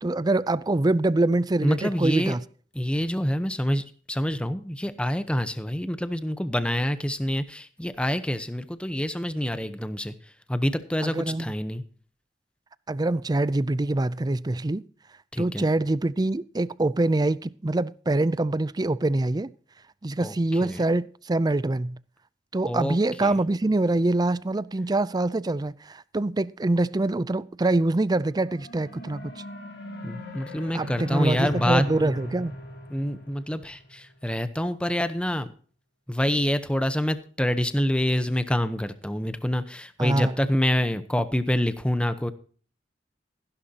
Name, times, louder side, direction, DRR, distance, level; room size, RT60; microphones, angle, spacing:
voice 1, 0.0-2.4 11.0-11.5 12.9-14.8 15.4-19.5 20.0-22.0 22.5-29.3 30.7-32.5 40.0-40.3, right 2 dB, 20° right, 0.5 m, -25 dB
voice 2, 1.6-2.4 2.7-10.1 10.5-11.8 15.3-15.6 20.2-20.8 22.7-23.0 23.2-23.4 30.0-31.8 32.9-35.5 36.1-42.3, equal, 5° left, 0.9 m, -27 dB
sound 1, 28.3-33.8, left 1 dB, 65° left, 3.9 m, -37 dB
15.5 x 11.5 x 2.9 m
head